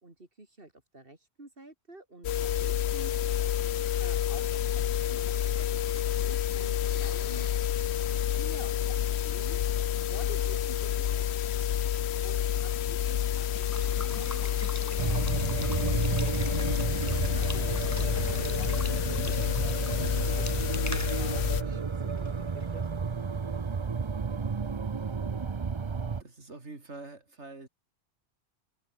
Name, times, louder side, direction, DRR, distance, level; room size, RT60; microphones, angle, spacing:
voice 1, 0.0-3.1 4.0-7.5 8.1-9.6 10.1-11.4 12.2-14.4 15.0-16.5 17.0-18.2 18.6-22.8, right 2 dB, 55° right, 3.9 m, -50 dB
sound 1, 2.2-21.6, left 10 dB, 75° left, 1.0 m, -29 dB
Water / Water tap faucet / Liquid, 13.2-22.9, left 1 dB, 15° left, 2.0 m, -43 dB
sound 2, 15.0-26.2, right 5 dB, 30° right, 0.6 m, -32 dB
voice 2, 26.2-27.7, right 3 dB, 80° right, 3.8 m, -45 dB
omnidirectional pair, 1.2 m